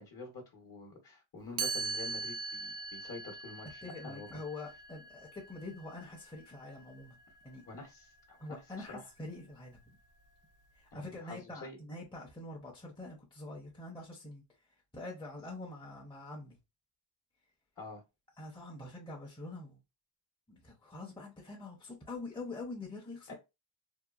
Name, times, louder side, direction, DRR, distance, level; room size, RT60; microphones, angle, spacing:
voice 1, 0.0-4.3 7.7-9.0 10.9-11.8 17.8-18.0 23.3-23.4, left 3 dB, 40° left, 0.9 m, -47 dB
Chime, 1.6-7.4, right 4 dB, 40° right, 0.4 m, -41 dB
voice 2, 3.8-7.2 7.4-7.6 8.4-10.0 10.8-14.4 14.9-16.6 18.4-19.8 20.5-23.3, left 2 dB, 10° left, 0.7 m, -45 dB
2.8 x 2.2 x 2.3 m
cardioid pair, 85°, 50 cm